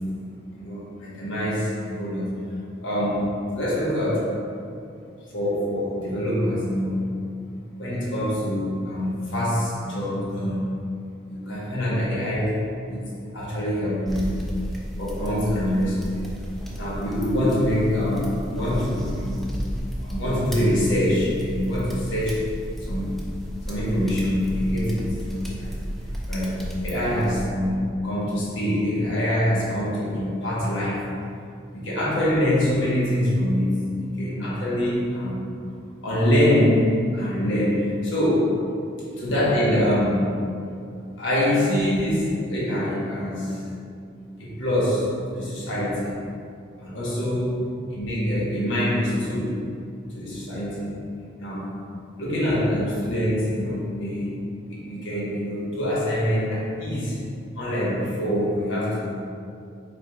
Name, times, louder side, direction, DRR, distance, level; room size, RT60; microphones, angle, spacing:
voice 1, 0.5-2.3 2.8-4.4 5.3-7.0 7.8-10.6 11.3-12.6 12.9-13.1 13.3-14.3 15.0-16.3 16.8-19.5 20.0-22.5 22.8-23.2 23.7-25.7 26.3-26.6 26.8-31.0 31.7-35.4 36.0-38.6 39.2-40.3 41.2-43.6 44.4-46.2 46.8-49.6 50.1-50.9 51.4-51.7 52.2-57.2 57.5-59.2, equal, 85° left, -6 dB, 1.2 m, -24 dB
sound 1, 14.1-27.5, equal, ahead, 0.4 m, -33 dB
5.0 x 4.4 x 2.3 m, 2.4 s
head